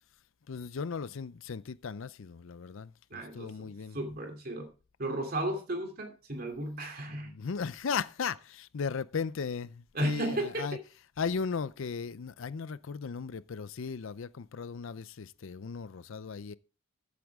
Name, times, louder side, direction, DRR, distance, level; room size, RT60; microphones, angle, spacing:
voice 1, 0.5-4.0 7.1-10.8 11.2-16.5, left 5 dB, 65° left, 0.5 m, -36 dB
voice 2, 3.1-4.7 5.0-7.3 9.9-10.6, right 1 dB, 45° right, 2.8 m, -34 dB
14.5 x 8.5 x 3.5 m
head